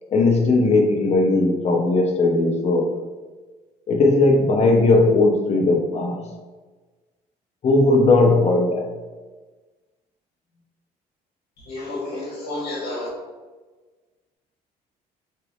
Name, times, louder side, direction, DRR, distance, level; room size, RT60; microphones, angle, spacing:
voice 1, 0.1-2.9 3.9-6.2 7.6-8.9, left 2 dB, 40° left, 1 dB, 0.6 m, -18 dB
voice 2, 11.7-13.1, left 2 dB, 65° left, -4 dB, 1.2 m, -30 dB
3.3 x 3.0 x 2.3 m, 1.3 s
cardioid pair, 110°, 17 cm